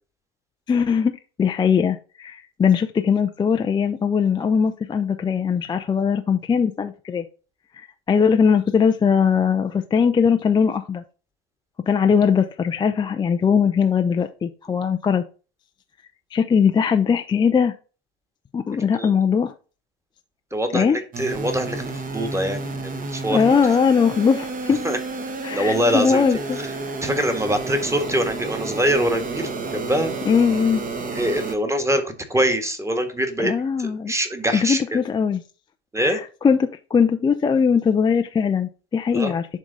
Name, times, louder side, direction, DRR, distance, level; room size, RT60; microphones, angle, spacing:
voice 1, 0.7-1.1 1.4-7.2 7.7-11.0 11.9-15.2 16.3-17.7 18.5-19.5 20.7-21.0 23.3-24.8 25.4-26.6 30.2-30.8 33.4-34.1 34.6-35.4 36.0-39.5, left 6 dB, 15° left, 6 dB, 0.5 m, -20 dB
voice 2, 20.5-21.8 22.1-23.6 24.8-25.0 25.5-26.2 26.6-26.7 27.0-30.1 31.1-33.5 33.8-35.0 35.9-36.2 39.1-39.3, equal, 10° right, 7 dB, 1.5 m, -24 dB
sound 1, 21.1-31.5, right 3 dB, 25° right, 1.2 m, -31 dB
11.0 x 3.6 x 3.9 m, 0.35 s
figure-of-eight pair, 75°, 32 cm